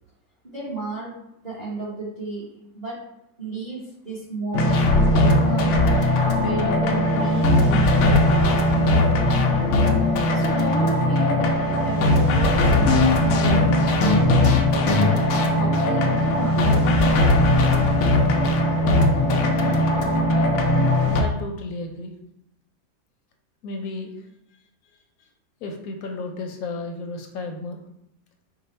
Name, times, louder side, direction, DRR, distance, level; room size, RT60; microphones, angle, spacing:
voice 1, 0.4-1.1 1.4-2.4 2.7-3.0 3.4-5.8 6.4-9.7 10.3-13.6 14.0-16.8, right 3 dB, 30° right, -6 dB, 0.9 m, -33 dB
sound 1, 4.5-21.2, left 1 dB, 85° left, 0.6 m, -19 dB
voice 2, 21.1-22.1 23.6-24.1 25.6-27.8, left 3 dB, 70° left, 3 dB, 0.9 m, -33 dB
4.9 x 2.1 x 4.2 m, 0.78 s
omnidirectional pair, 1.8 m